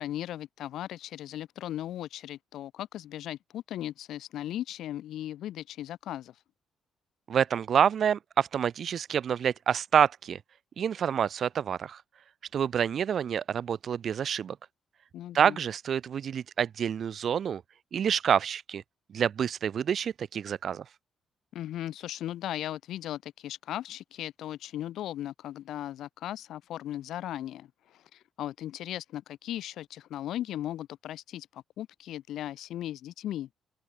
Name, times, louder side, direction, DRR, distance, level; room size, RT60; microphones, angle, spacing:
voice 1, 0.0-6.3 15.1-15.6 21.5-27.7 27.9-33.5, left 12 dB, 80° left, 4.0 m, -37 dB
voice 2, 7.3-10.4 10.8-12.0 12.5-14.6 15.3-17.6 17.9-18.8 19.1-20.8, right 8 dB, 55° right, 7.6 m, -27 dB
open air
cardioid pair, 90°, 0 cm